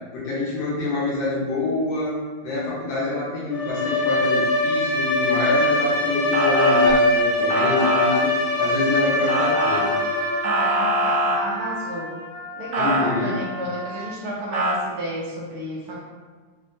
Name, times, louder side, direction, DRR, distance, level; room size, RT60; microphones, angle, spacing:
voice 1, 0.1-2.2 2.4-9.8 12.8-13.3, left 3 dB, 85° left, -7 dB, 1.7 m, -26 dB
Bowed string instrument, 3.5-10.6, left 1 dB, 65° left, 0.7 m, -22 dB
Motor vehicle (road) / Siren, 6.3-6.8 7.5-8.1 9.3-9.8 10.4-11.4 12.7-13.0 14.5-14.7, right 1 dB, 85° right, 0.6 m, -23 dB
Wind instrument woodwind instrument, 9.6-14.2, right 2 dB, 50° left, 1.5 m, -34 dB
voice 2, 10.4-12.1 12.6-16.0, right 1 dB, 70° right, -4 dB, 0.9 m, -30 dB
4.2 x 2.0 x 2.6 m, 1.4 s
omnidirectional pair, 2.1 m